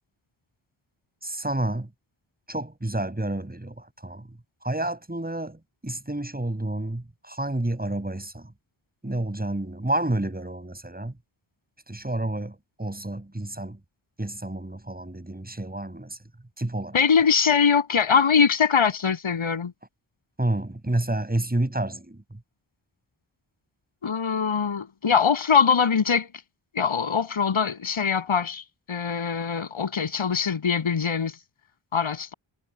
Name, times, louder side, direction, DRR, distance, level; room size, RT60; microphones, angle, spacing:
voice 1, 1.2-1.9 2.5-4.3 4.6-8.5 9.0-11.1 11.9-13.8 14.2-16.2 16.6-16.9 20.4-22.2, right 1 dB, 20° right, 7.4 m, -29 dB
voice 2, 16.9-19.7 24.0-26.3 26.7-28.6 28.9-31.3 31.9-32.3, left 6 dB, 80° left, 7.9 m, -22 dB
cardioid pair, 50°, 47 cm